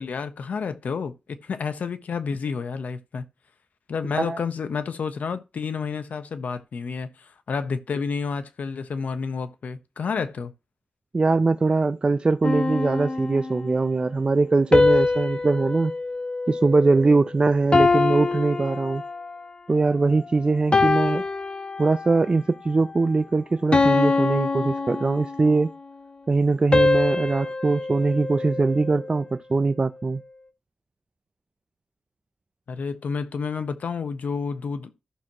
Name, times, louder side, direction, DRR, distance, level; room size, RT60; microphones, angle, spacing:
voice 1, 0.0-3.2 3.9-10.5 32.7-34.9, left 5 dB, 80° left, 1.0 m, -30 dB
voice 2, 11.1-15.9 16.5-19.0 19.7-21.2 21.8-25.7 26.3-30.2, right 3 dB, 40° right, 0.5 m, -22 dB
sound 1, 12.4-13.7 14.7-17.2 17.7-19.4 20.0-20.2 20.7-22.3 22.7-23.0 23.7-25.6 26.7-29.1, left 3 dB, 40° left, 1.2 m, -24 dB
14.0 x 6.2 x 3.0 m
cardioid pair, 65°, 3 cm